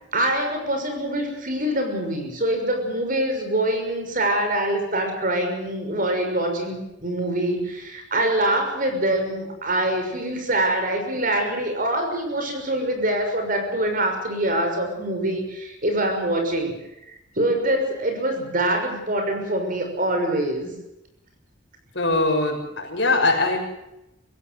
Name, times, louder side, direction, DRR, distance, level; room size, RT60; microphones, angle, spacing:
voice 1, 0.1-16.7 17.1-20.7, right 1 dB, 45° right, 5 dB, 6.2 m, -24 dB
voice 2, 21.9-23.6, left 2 dB, 60° left, 1 dB, 7.2 m, -21 dB
25.0 x 16.0 x 7.9 m, 0.89 s
head